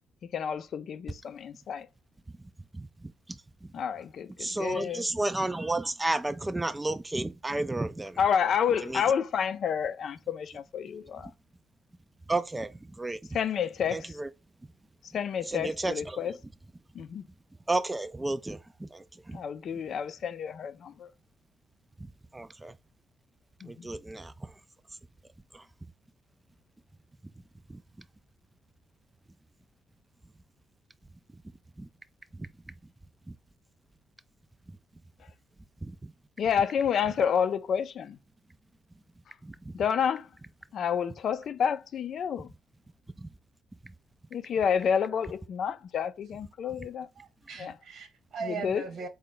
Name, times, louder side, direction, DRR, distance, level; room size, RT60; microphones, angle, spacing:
voice 1, 0.3-1.9 3.7-5.0 8.2-11.3 13.3-14.1 15.1-16.3 16.9-17.2 19.3-21.1 23.6-23.9 36.4-38.2 39.7-40.3 40.7-42.5 44.3-47.1 47.6-47.7 48.4-48.8, left 7 dB, 60° left, 0.4 m, -29 dB
voice 2, 2.7-3.7 4.4-8.2 8.8-9.0 12.3-12.7 13.0-13.2 13.9-14.3 15.5-16.2 17.7-19.4 22.0-22.7 23.7-24.3 25.5-25.6 27.7-27.8 31.8-31.9 32.4-32.5 33.3-33.4 35.8-36.1 39.4-39.7 43.2-43.3, right 2 dB, 15° right, 0.4 m, -32 dB
voice 3, 47.2-49.1, right 5 dB, 70° right, 1.2 m, -39 dB
3.8 x 2.2 x 3.8 m
cardioid pair, 90°, 0 cm